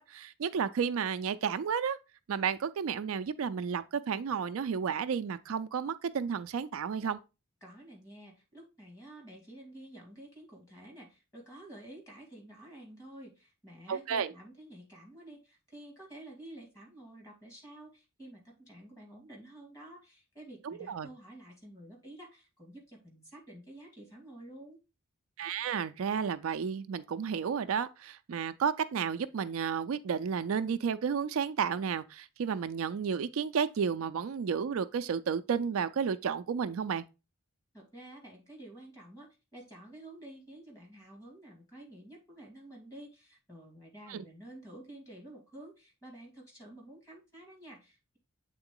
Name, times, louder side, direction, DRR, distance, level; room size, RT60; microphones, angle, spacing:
voice 1, 0.0-2.0 2.3-7.2 13.9-14.3 20.6-21.1 25.4-37.0 44.1-44.2, right 6 dB, 70° right, 0.4 m, -32 dB
voice 2, 7.6-24.8 37.7-48.2, right 1 dB, 15° left, 2.3 m, -50 dB
7.9 x 3.8 x 3.7 m
head